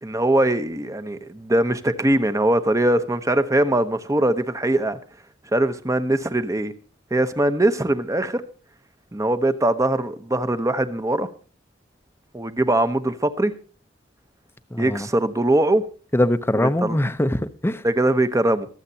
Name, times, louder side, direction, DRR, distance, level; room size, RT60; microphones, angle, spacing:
voice 1, 0.0-5.0 5.5-6.7 7.1-8.4 9.1-11.3 12.3-13.5 14.8-15.8 16.5-17.0 17.8-18.7, right 1 dB, 15° right, 0.9 m, -21 dB
voice 2, 14.7-15.1 16.1-17.8, left 1 dB, 15° left, 0.8 m, -22 dB
24.5 x 8.1 x 2.8 m
head